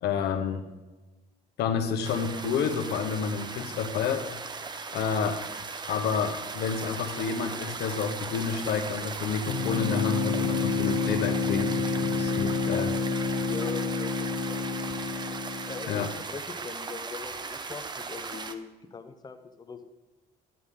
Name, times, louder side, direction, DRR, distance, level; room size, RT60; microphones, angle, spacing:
voice 1, 0.0-0.6 1.6-4.2 4.9-5.4 5.9-13.0 15.9-16.1, left 6 dB, 75° left, 5 dB, 1.1 m, -29 dB
sound 1, 2.0-18.5, right 4 dB, 25° right, 0.6 m, -38 dB
sound 2, 9.5-16.1, left 4 dB, 50° left, 1.0 m, -29 dB
voice 2, 13.4-14.7 15.7-19.8, left 5 dB, 25° left, 8 dB, 0.8 m, -41 dB
10.5 x 8.1 x 3.8 m, 1.1 s
cardioid pair, 110°, 17 cm